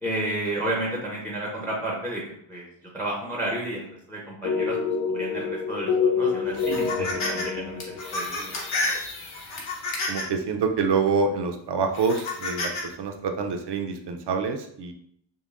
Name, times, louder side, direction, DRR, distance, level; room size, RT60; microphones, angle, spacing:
voice 1, 0.0-2.2 2.5-2.7 2.9-8.5 8.8-8.9, right 1 dB, 5° left, -3 dB, 0.7 m, -32 dB
sound 1, 4.4-8.5, left 5 dB, 65° left, 0.6 m, -27 dB
sound 2, 6.5-7.4 7.8-10.4 11.0-11.1 11.9-12.8, left 2 dB, 90° left, 1.1 m, -30 dB
voice 2, 7.1-7.7 10.1-14.9, right 5 dB, 60° right, 5 dB, 0.6 m, -27 dB
5.3 x 2.2 x 2.5 m, 0.69 s
wide cardioid pair, 125°, 48 cm